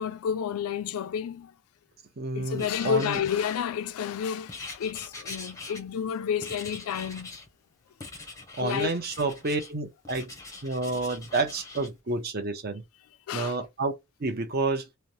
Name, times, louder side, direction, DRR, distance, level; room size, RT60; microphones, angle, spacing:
voice 1, 0.0-1.5 2.3-7.4 8.6-8.9 13.3-13.5, left 8 dB, 75° left, 0.3 m, -30 dB
voice 2, 2.2-3.2 8.6-10.3 10.6-12.8 13.3-13.9 14.2-14.9, right 3 dB, 45° right, 0.6 m, -29 dB
Writing, 2.6-3.9 4.5-6.1 6.4-7.5 8.0-9.7 10.0-11.9, left 3 dB, 15° left, 0.6 m, -43 dB
3.1 x 2.0 x 2.6 m
head